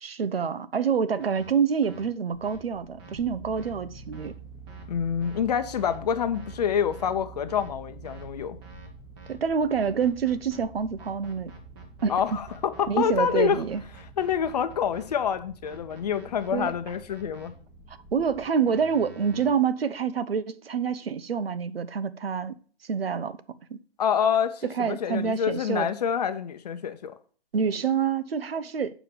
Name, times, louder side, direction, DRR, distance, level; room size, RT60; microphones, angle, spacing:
voice 1, 0.0-4.3 9.3-11.5 12.0-12.1 12.9-13.8 16.5-16.7 17.9-22.5 22.9-23.4 23.7-23.8 24.6-25.9 27.5-28.9, right 6 dB, 75° right, 0.8 m, -27 dB
sound 1, 1.2-1.5 1.8-2.0 2.4-2.6 3.0-3.1 3.6-3.7 4.1-4.3 4.7-4.8 5.2-5.4 5.8-6.0 6.3-6.5 6.9-7.1 7.5-7.7 8.0-8.3 8.6-8.9 9.2-9.3 9.8-10.6 11.0-12.8 13.2-15.0 15.6-17.5 18.7-19.5, right 3 dB, 25° right, 1.5 m, -49 dB
sound 2, 2.3-18.5, right 4 dB, ahead, 1.1 m, -47 dB
voice 2, 4.9-8.6 12.1-13.6 14.2-17.5 24.0-27.1, left 8 dB, 40° left, 0.8 m, -27 dB
7.4 x 5.0 x 6.8 m
hypercardioid pair, 150°, 30 cm